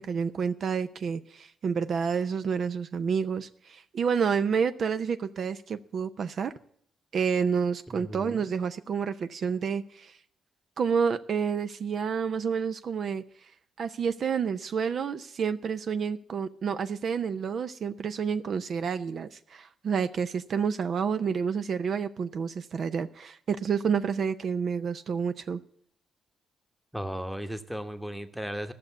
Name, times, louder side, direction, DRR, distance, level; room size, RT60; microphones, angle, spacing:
voice 1, 0.0-6.5 7.1-10.2 10.8-13.5 13.8-25.6, right 6 dB, 50° right, 11 dB, 0.6 m, -29 dB
voice 2, 7.9-8.5 26.9-28.7, equal, ahead, 8 dB, 1.1 m, -36 dB
13.5 x 6.7 x 8.3 m, 0.64 s
cardioid pair, 120°, 0 cm